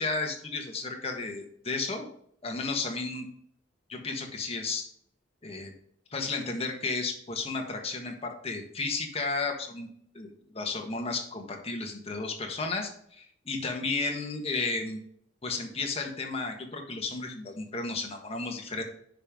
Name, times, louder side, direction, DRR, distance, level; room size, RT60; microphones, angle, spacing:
voice 1, 0.0-2.1 2.4-3.3 3.9-4.8 5.4-5.7 6.1-9.9 10.1-15.0 15.4-18.8, left 3 dB, 35° left, 2 dB, 1.5 m, -33 dB
9.6 x 5.4 x 3.8 m, 0.65 s
head